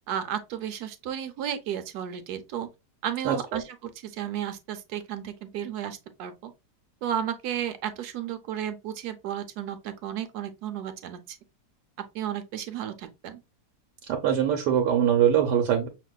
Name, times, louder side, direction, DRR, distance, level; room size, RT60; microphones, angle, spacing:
voice 1, 0.1-2.7 3.0-6.5 7.0-11.4 12.1-13.4, right 10 dB, 75° right, 1.1 m, -33 dB
voice 2, 3.2-3.6 14.1-15.9, right 9 dB, 90° right, 1.3 m, -23 dB
5.9 x 2.9 x 2.2 m
omnidirectional pair, 1.8 m